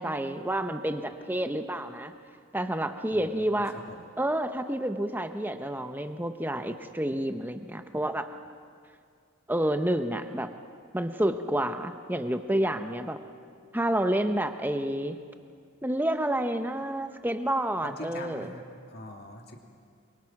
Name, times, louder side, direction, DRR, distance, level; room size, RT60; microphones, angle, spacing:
voice 1, 0.0-2.1 2.5-3.7 4.2-8.3 9.5-10.5 10.9-13.2 13.7-15.2 15.8-18.5, right 1 dB, 10° right, 7 dB, 0.9 m, -29 dB
voice 2, 3.1-4.1 17.8-18.6 18.9-19.6, left 1 dB, 45° left, 2 dB, 2.4 m, -43 dB
29.0 x 23.0 x 6.0 m, 2.2 s
head